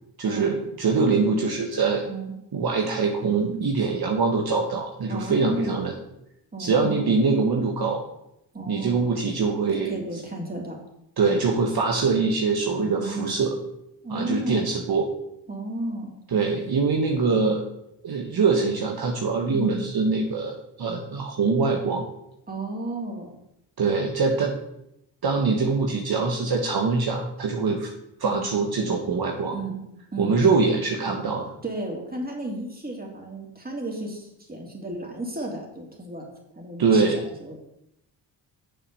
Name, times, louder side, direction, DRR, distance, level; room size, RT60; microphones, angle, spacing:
voice 1, 0.2-2.0 2.5-5.9 6.6-8.0 8.7-9.9 11.2-13.5 14.1-15.1 16.3-17.7 18.0-22.0 23.8-24.5 25.2-27.9 28.2-29.6 30.2-31.4 36.8-37.2, right 4 dB, 55° right, 2 dB, 1.3 m, -23 dB
voice 2, 5.1-5.8 6.5-7.1 8.5-9.1 9.7-10.8 12.8-13.4 14.0-14.7 15.5-16.2 19.5-19.8 22.5-23.3 28.2-28.4 29.5-29.8 30.1-30.3 31.6-36.2 36.6-37.6, right 2 dB, 20° right, -1 dB, 3.1 m, -33 dB
6.8 x 5.8 x 6.9 m, 0.82 s
supercardioid pair, 60°, 45 cm